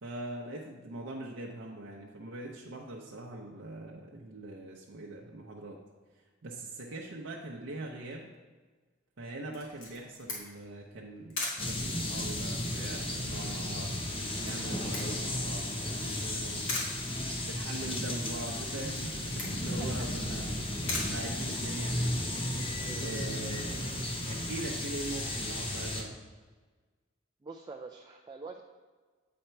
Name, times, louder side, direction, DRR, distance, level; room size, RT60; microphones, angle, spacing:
voice 1, 0.0-5.8 6.4-8.3 9.2-14.0 14.4-16.8 17.4-20.5 21.0-22.1 23.0-26.2, right 2 dB, 70° right, -2 dB, 0.7 m, -42 dB
Camera, 9.5-22.0, left 2 dB, 90° left, 1.8 m, -42 dB
sound 1, 11.6-26.0, left 1 dB, 25° left, 0.8 m, -34 dB
voice 2, 22.8-23.3 27.4-28.6, right 4 dB, 20° right, 2 dB, 0.3 m, -45 dB
7.9 x 4.3 x 4.4 m, 1.4 s
head